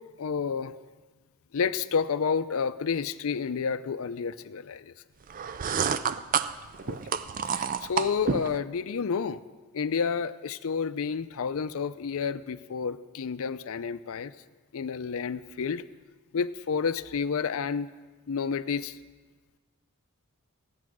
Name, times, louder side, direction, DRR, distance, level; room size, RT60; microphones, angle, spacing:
voice 1, 0.2-0.7 1.5-4.9 6.8-7.0 7.5-9.4 9.7-14.3 14.7-15.8 16.3-17.9 18.3-19.0, left 6 dB, 65° left, 14 dB, 0.5 m, -30 dB
sound 1, 5.3-8.6, right 7 dB, 40° right, 0.4 m, -29 dB
15.0 x 9.4 x 6.1 m, 1.3 s
head